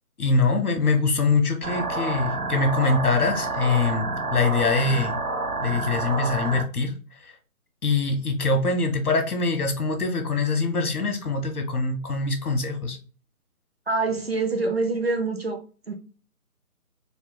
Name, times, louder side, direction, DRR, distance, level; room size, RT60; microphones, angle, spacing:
voice 1, 0.2-5.2 5.6-6.9 7.2-7.3 7.8-13.0, left 3 dB, 80° left, 1.4 m, -23 dB
sound 1, 1.6-6.6, right 3 dB, 90° right, 1.2 m, -29 dB
voice 2, 13.9-15.6 15.9-16.0, right 3 dB, 45° right, 0.6 m, -25 dB
4.2 x 2.4 x 3.8 m
hypercardioid pair, 180°, 44 cm